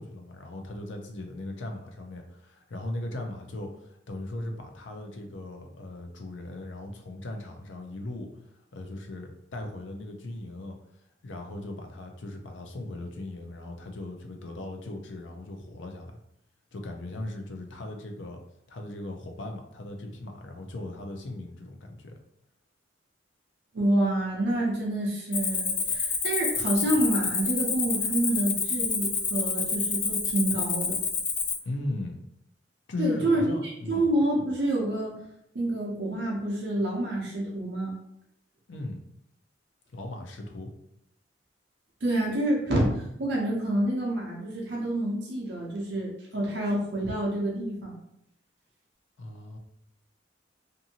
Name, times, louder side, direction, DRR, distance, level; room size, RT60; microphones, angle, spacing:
voice 1, 0.0-8.3 8.7-10.8 11.2-16.2 16.7-18.4 18.7-22.1 31.6-32.2 32.9-34.0 38.7-39.0 39.9-40.7 49.2-49.6, left 2 dB, 80° left, 3 dB, 0.5 m, -38 dB
voice 2, 23.7-31.0 33.0-35.3 35.5-38.0 42.0-48.0, right 1 dB, 60° right, -3 dB, 0.6 m, -28 dB
Cricket, 25.3-31.5, left 5 dB, 30° left, 0.3 m, -28 dB
2.6 x 2.6 x 2.7 m, 0.78 s
head